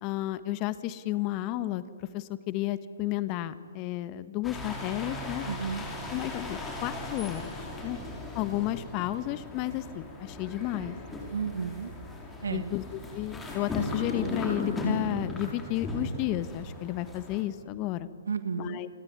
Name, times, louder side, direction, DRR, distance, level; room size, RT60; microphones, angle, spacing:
voice 1, 0.0-5.5 6.1-8.0 8.3-11.0 12.5-12.8 13.1-18.1 18.6-18.9, left 15 dB, 30° left, 14 dB, 1.3 m, -32 dB
sound 1, 4.4-17.4, left 1 dB, 10° left, 5.5 m, -37 dB
voice 2, 5.4-5.9 7.9-8.0 11.3-11.9 12.4-12.7 18.3-18.8, right 6 dB, 70° right, 12 dB, 1.6 m, -33 dB
29.0 x 20.5 x 9.5 m, 2.2 s
hypercardioid pair, 135°, 0 cm